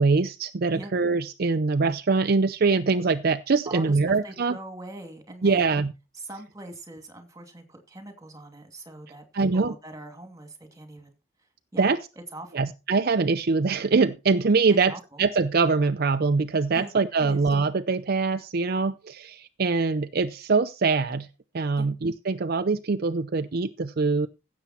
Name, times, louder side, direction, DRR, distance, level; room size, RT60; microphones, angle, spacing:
voice 1, 0.0-4.6 5.4-5.9 9.3-9.7 11.8-12.0 12.5-14.9 15.2-21.3 21.5-24.3, right 4 dB, 55° right, 0.6 m, -23 dB
voice 2, 3.7-5.8 6.2-11.2 11.7-11.9 12.3-12.7 14.7-15.2 16.7-16.9 17.2-17.5 21.7-21.9, right 1 dB, 20° right, 2.6 m, -42 dB
16.0 x 7.3 x 4.3 m
head